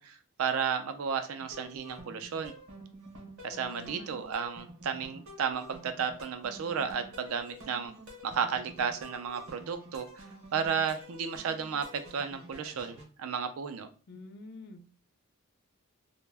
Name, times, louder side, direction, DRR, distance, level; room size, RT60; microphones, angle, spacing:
voice 1, 0.0-2.5 3.4-7.9 8.2-10.2 10.5-13.9, right 6 dB, 80° right, 9 dB, 0.4 m, -33 dB
sound 1, 1.4-13.0, equal, 60° right, 0.8 m, -49 dB
voice 2, 3.5-4.2 14.1-14.8, left 2 dB, 50° left, 8 dB, 0.3 m, -47 dB
2.1 x 2.0 x 3.3 m, 0.36 s
head